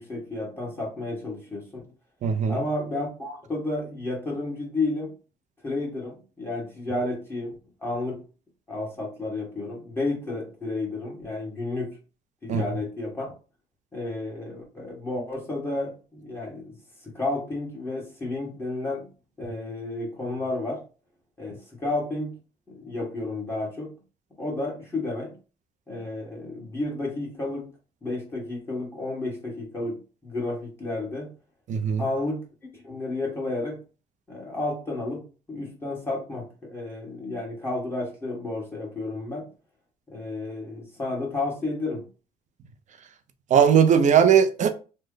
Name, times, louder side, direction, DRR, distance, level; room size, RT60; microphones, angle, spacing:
voice 1, 0.0-1.9 2.5-5.1 5.6-7.5 7.8-8.2 8.7-12.0 12.4-13.3 13.9-16.8 17.0-19.1 19.4-20.8 21.4-22.3 22.7-23.9 24.4-25.4 25.9-27.7 28.0-31.3 32.0-32.5 32.7-33.8 34.3-35.2 35.5-39.5 40.1-42.1, left 2 dB, 15° left, 1.6 m, -31 dB
voice 2, 2.2-2.6 12.5-12.6 31.7-32.0 43.5-44.7, right 7 dB, 45° right, 0.5 m, -18 dB
3.2 x 2.2 x 3.7 m
cardioid pair, 110°, 17 cm